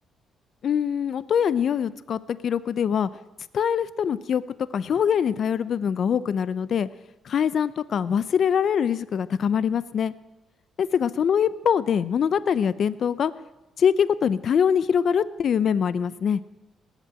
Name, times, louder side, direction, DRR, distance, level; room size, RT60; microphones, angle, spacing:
voice 1, 0.6-3.1 3.5-4.4 4.7-6.9 7.2-10.1 10.8-13.3 13.8-16.4, left 7 dB, 60° left, 16 dB, 0.6 m, -23 dB
19.0 x 8.2 x 9.0 m, 1.1 s
cardioid pair, 90°, 0 cm